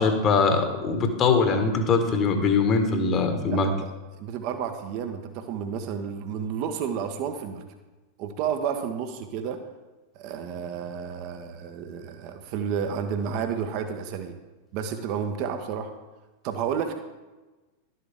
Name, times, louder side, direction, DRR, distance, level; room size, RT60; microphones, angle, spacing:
voice 1, 0.0-3.7, left 4 dB, 30° left, 6 dB, 1.5 m, -22 dB
voice 2, 3.5-3.9 4.1-7.6 8.2-9.6 10.1-14.3 14.7-15.9 16.4-16.9, right 7 dB, 45° right, 6 dB, 1.0 m, -31 dB
12.0 x 8.6 x 3.6 m, 1.2 s
figure-of-eight pair, 90°, 0 cm